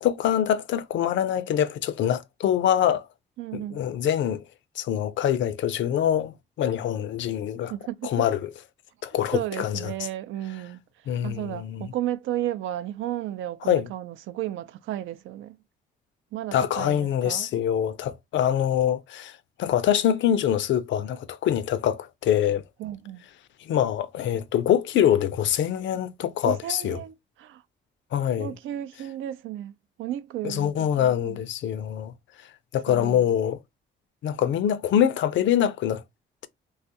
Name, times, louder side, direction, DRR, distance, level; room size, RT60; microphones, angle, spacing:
voice 1, 0.0-3.1 3.5-4.4 4.8-7.7 8.0-8.5 9.0-9.9 11.1-11.9 13.7-13.9 16.5-22.6 23.6-27.0 28.1-28.5 30.4-32.1 32.7-33.6 34.2-36.0, left 10 dB, 70° left, 0.5 m, -24 dB
voice 2, 3.4-3.8 7.6-8.1 9.3-15.6 16.3-17.5 22.8-23.2 26.4-27.6 28.4-29.7 30.0-31.4 32.9-33.3, right 12 dB, 85° right, 0.5 m, -33 dB
3.2 x 2.4 x 2.7 m
cardioid pair, 90°, 20 cm